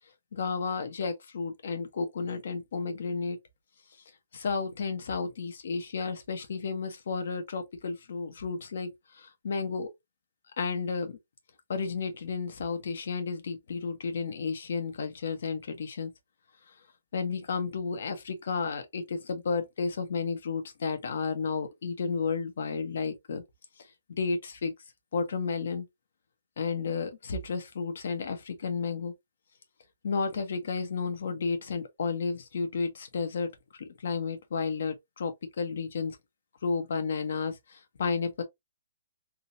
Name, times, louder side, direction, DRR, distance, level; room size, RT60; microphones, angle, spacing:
voice 1, 0.3-3.4 4.3-9.9 10.6-11.1 11.7-16.1 17.1-23.4 24.2-24.7 25.1-25.8 26.6-29.1 30.0-33.5 34.0-36.2 36.6-38.4, left 5 dB, 70° left, 1.2 m, -32 dB
3.7 x 2.8 x 2.7 m
hypercardioid pair, 150°, 0 cm